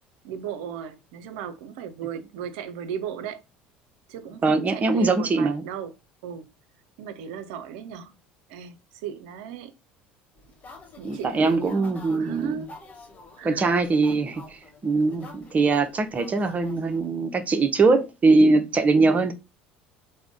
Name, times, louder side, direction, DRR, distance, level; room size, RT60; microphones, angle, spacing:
voice 1, 0.2-3.4 4.1-5.9 6.2-6.5 7.0-8.2 8.5-9.7 11.0-12.7 13.4-13.7, right 8 dB, 65° right, 0.5 m, -36 dB
voice 2, 4.4-5.6 11.0-12.6 13.4-19.3, right 3 dB, 30° right, 0.7 m, -22 dB
sound 1, 10.4-17.1, left 3 dB, 30° left, 1.0 m, -48 dB
3.6 x 2.2 x 3.5 m
hypercardioid pair, 65°, 5 cm